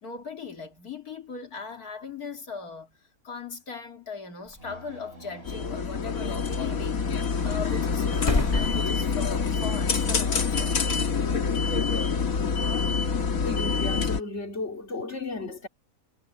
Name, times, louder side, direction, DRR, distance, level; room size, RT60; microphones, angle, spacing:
voice 1, 0.0-3.0 3.2-10.8, left 5 dB, 90° left, 3.1 m, -39 dB
sound 1, 4.5-4.6 5.5-6.4 7.3-9.6 9.9-10.0 11.6-11.7, left 1 dB, 20° left, 2.4 m, -32 dB
sound 2, 4.6-8.6, right 1 dB, 45° right, 5.7 m, -49 dB
sound 3, 5.5-14.2, left 5 dB, 70° left, 2.1 m, -26 dB
voice 2, 13.4-15.7, left 3 dB, 50° left, 3.0 m, -34 dB
omnidirectional pair, 1.5 m